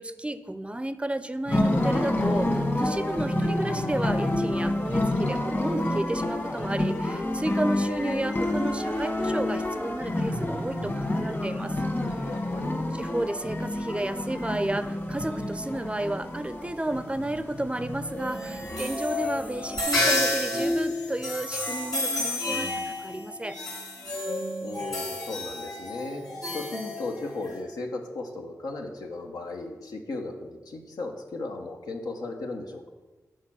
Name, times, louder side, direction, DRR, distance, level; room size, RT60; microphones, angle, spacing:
voice 1, 0.0-11.8 13.0-23.6, right 1 dB, 20° right, 12 dB, 0.4 m, -32 dB
sound 1, 1.5-19.8, left 1 dB, 35° left, 1.5 m, -29 dB
voice 2, 12.2-12.9 24.6-26.2 26.5-32.9, left 2 dB, 90° left, 2 dB, 0.9 m, -36 dB
sound 2, 18.1-27.6, left 1 dB, 70° left, 1.9 m, -30 dB
6.5 x 4.5 x 6.1 m, 1.2 s
cardioid pair, 45°, 6 cm